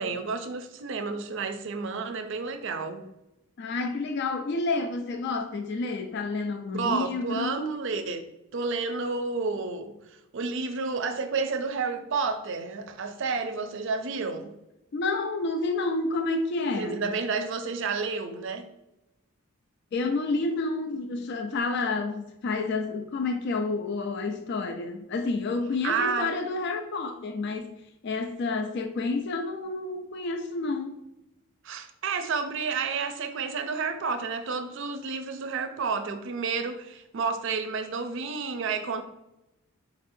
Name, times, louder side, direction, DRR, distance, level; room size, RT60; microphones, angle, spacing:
voice 1, 0.0-3.0 6.7-8.3 8.5-9.9 10.3-14.5 16.8-18.7 25.8-26.3 31.6-39.0, right 4 dB, 60° right, 0.5 m, -30 dB
voice 2, 3.6-7.6 14.9-17.1 19.9-31.0, left 3 dB, 50° left, 0.3 m, -29 dB
4.2 x 4.2 x 2.6 m
head